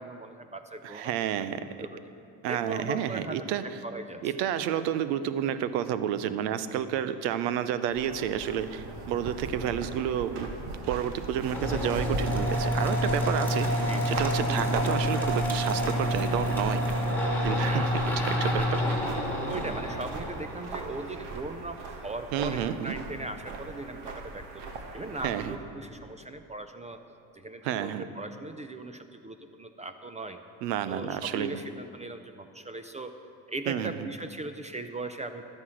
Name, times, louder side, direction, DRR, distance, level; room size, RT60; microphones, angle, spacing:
voice 1, 0.0-1.1 1.8-2.0 2.5-4.5 13.9-14.2 14.5-14.6 17.5-17.9 18.6-18.9 19.2-27.0 27.3-30.4 30.9-33.1 33.5-35.4, right 2 dB, 15° right, 8 dB, 0.4 m, -39 dB
voice 2, 0.8-1.6 2.4-3.6 4.2-10.5 10.9-16.8 17.4-17.9 18.3-18.8 22.3-22.9 25.2-25.5 27.6-28.0 30.6-31.6 33.7-34.1, right 10 dB, 90° right, 13 dB, 0.8 m, -30 dB
sound 1, 7.9-25.6, right 3 dB, 55° right, 1.7 m, -38 dB
sound 2, 11.5-21.0, equal, 5° left, 2.2 m, -28 dB
12.0 x 9.7 x 6.4 m, 2.7 s
supercardioid pair, 110°, 49 cm